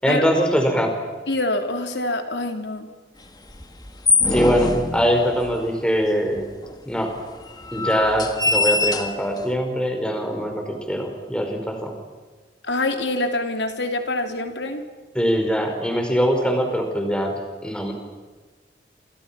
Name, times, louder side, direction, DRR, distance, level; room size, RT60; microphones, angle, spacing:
voice 1, 0.0-0.9 4.3-6.5 6.8-7.1 7.7-11.9 15.1-17.3 17.6-17.9, equal, 5° left, 3 dB, 5.1 m, -22 dB
voice 2, 1.3-2.9 12.6-14.8, left 2 dB, 80° left, 5 dB, 3.4 m, -25 dB
sound 1, 3.5-5.6 6.4-6.5 6.6-6.7 7.4-9.5, left 3 dB, 20° left, 1.9 m, -23 dB
28.5 x 28.0 x 6.0 m, 1.3 s
head